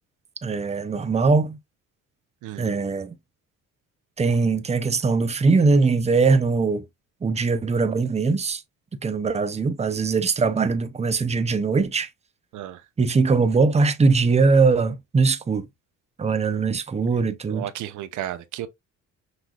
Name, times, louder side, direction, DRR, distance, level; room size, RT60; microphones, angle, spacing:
voice 1, 0.4-1.6 2.6-3.2 4.2-6.9 7.2-8.6 9.0-12.1 13.0-15.7 16.2-17.7, right 4 dB, 20° right, 0.7 m, -21 dB
voice 2, 2.4-2.7 12.5-12.8 17.5-18.7, right 12 dB, 85° right, 0.7 m, -33 dB
5.9 x 3.3 x 2.4 m
cardioid pair, 90°, 30 cm